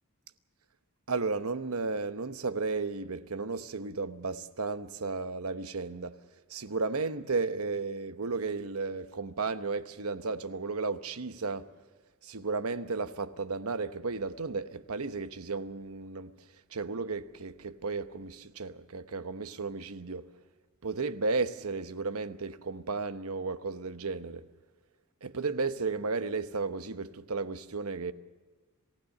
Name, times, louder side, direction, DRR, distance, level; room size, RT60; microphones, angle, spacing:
voice 1, 1.1-6.2 6.5-11.7 12.2-16.3 16.7-20.3 20.8-24.4 25.2-28.1, right 4 dB, 75° right, 1.0 m, -34 dB
27.5 x 16.0 x 6.7 m
head